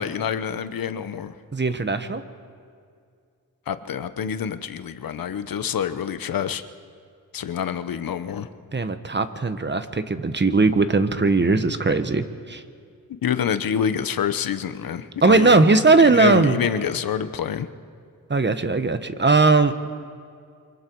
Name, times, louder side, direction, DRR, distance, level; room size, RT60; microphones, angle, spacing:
voice 1, 0.0-1.3 3.7-6.6 7.3-8.5 13.2-17.7, left 8 dB, 80° left, 11 dB, 1.0 m, -27 dB
voice 2, 1.5-2.2 8.7-12.6 15.2-16.6 18.3-19.9, right 3 dB, 30° right, 10 dB, 1.3 m, -19 dB
28.5 x 24.5 x 4.7 m, 2.3 s
cardioid pair, 70°, 34 cm